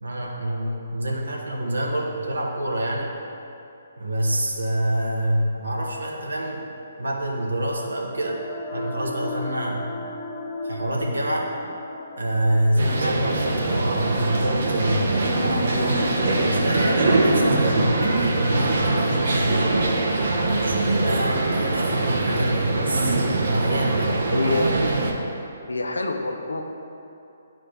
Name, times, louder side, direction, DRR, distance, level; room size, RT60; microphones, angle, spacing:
voice 1, 0.0-3.1 4.0-8.4 8.7-9.9 10.6-11.5 12.2-16.0 16.4-19.7 20.5-24.1, right 1 dB, 70° right, -1 dB, 1.2 m, -27 dB
sound 1, 7.0-21.0, left 3 dB, 35° left, 0.6 m, -36 dB
sound 2, 12.8-25.1, right 2 dB, 55° right, 0.9 m, -22 dB
voice 2, 24.3-24.7 25.7-26.6, left 3 dB, 70° left, 3 dB, 0.7 m, -26 dB
11.0 x 4.1 x 3.3 m, 2.7 s
figure-of-eight pair, 135°, 0 cm